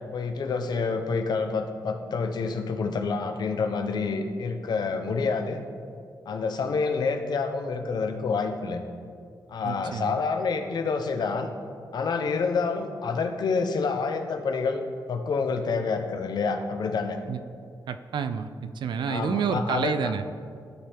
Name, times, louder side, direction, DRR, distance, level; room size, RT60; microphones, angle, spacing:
voice 1, 0.1-5.6 6.3-8.8 9.5-11.5 11.9-14.8 15.1-17.2 19.1-19.9, left 4 dB, 60° left, 6 dB, 0.6 m, -28 dB
voice 2, 9.6-10.2 17.3-17.4 17.9-20.2, right 6 dB, 75° right, 11 dB, 0.4 m, -29 dB
13.0 x 4.3 x 3.5 m, 2.2 s
wide cardioid pair, 145°, 8 cm